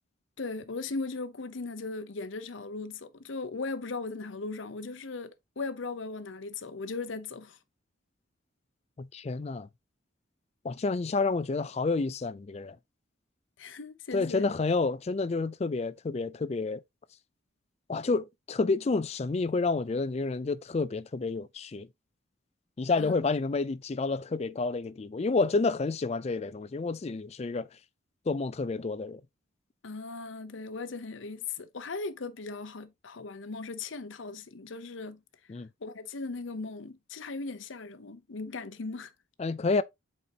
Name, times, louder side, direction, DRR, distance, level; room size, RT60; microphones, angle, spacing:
voice 1, 0.4-7.6 13.6-14.5 23.0-23.1 29.8-35.2 35.8-39.1, left 3 dB, 70° left, 0.7 m, -38 dB
voice 2, 9.0-9.7 10.6-12.7 14.1-16.8 17.9-21.9 22.8-27.7 28.3-29.2 35.5-35.7 39.4-39.8, left 3 dB, 30° left, 0.3 m, -29 dB
8.2 x 4.3 x 2.8 m
head